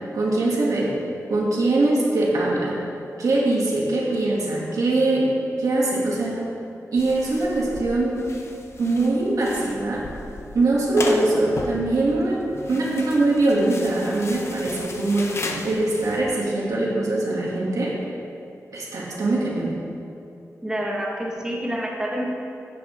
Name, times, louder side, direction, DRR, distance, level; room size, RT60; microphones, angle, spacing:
voice 1, 0.1-0.9 1.3-2.8 3.2-5.3 5.6-6.4 6.9-8.2 8.8-10.1 10.5-12.4 12.7-17.9 18.7-19.7, right 2 dB, 85° right, -5 dB, 2.7 m, -22 dB
sound 1, 7.0-16.2, left 2 dB, 50° left, 1.0 m, -36 dB
voice 2, 20.6-22.3, equal, 10° right, -3 dB, 1.7 m, -27 dB
15.0 x 9.3 x 3.8 m, 2.6 s
wide cardioid pair, 140°, 6 cm